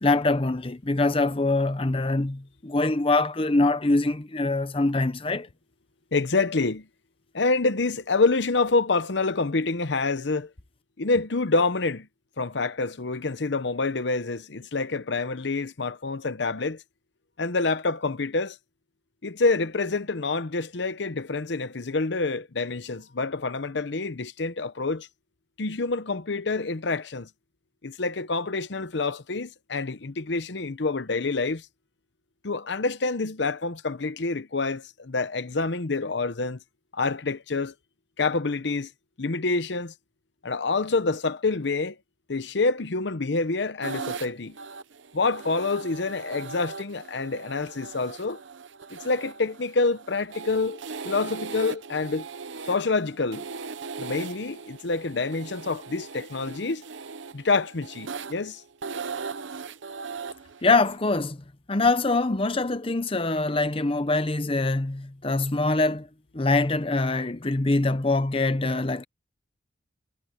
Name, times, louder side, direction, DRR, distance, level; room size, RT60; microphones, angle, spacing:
voice 1, 0.0-5.5 60.6-61.4 61.7-66.1 66.3-69.0, left 2 dB, 30° left, 0.8 m, -24 dB
voice 2, 6.1-6.8 7.3-10.5 11.0-12.1 12.4-16.8 17.4-18.6 19.2-25.1 25.6-27.3 27.8-31.6 32.4-36.6 36.9-37.7 38.2-38.9 39.2-39.9 40.4-42.0 42.3-44.5 45.1-48.4 48.9-50.8 51.0-52.2 52.6-53.4 54.0-56.8 57.3-58.6, left 3 dB, 65° left, 0.8 m, -27 dB
sound 1, 43.8-61.0, right 5 dB, 75° right, 0.8 m, -39 dB
head